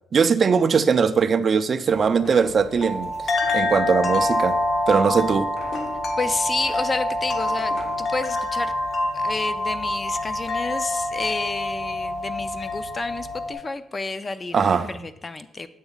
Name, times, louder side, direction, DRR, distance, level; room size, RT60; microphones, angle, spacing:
voice 1, 0.1-3.1 3.5-4.6 4.9-5.5 14.5-14.9, right 6 dB, 45° right, 12 dB, 0.3 m, -20 dB
sound 1, 1.9-13.5, left 1 dB, 55° left, 0.7 m, -26 dB
sound 2, 2.2-8.1, left 2 dB, 70° left, 1.2 m, -43 dB
voice 2, 6.2-8.7 9.1-14.6 14.9-15.7, left 3 dB, 30° left, 12 dB, 0.4 m, -30 dB
8.0 x 3.0 x 3.9 m, 0.88 s
cardioid pair, 90°, 0 cm